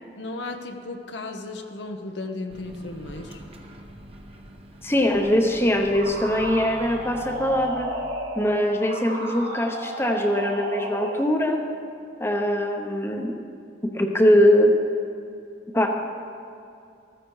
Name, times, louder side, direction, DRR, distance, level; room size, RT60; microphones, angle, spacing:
voice 1, 0.2-3.4, left 2 dB, 75° left, 4 dB, 1.0 m, -35 dB
Microwave oven, 2.5-7.7, right 1 dB, 30° right, 1.2 m, -44 dB
voice 2, 4.8-7.9 8.4-11.6 12.2-13.4 13.8-14.7 15.7-15.9, equal, 15° left, 2 dB, 0.9 m, -22 dB
sound 1, 5.9-11.3, right 1 dB, 80° right, 3.0 m, -33 dB
14.5 x 14.0 x 4.8 m, 2.6 s
head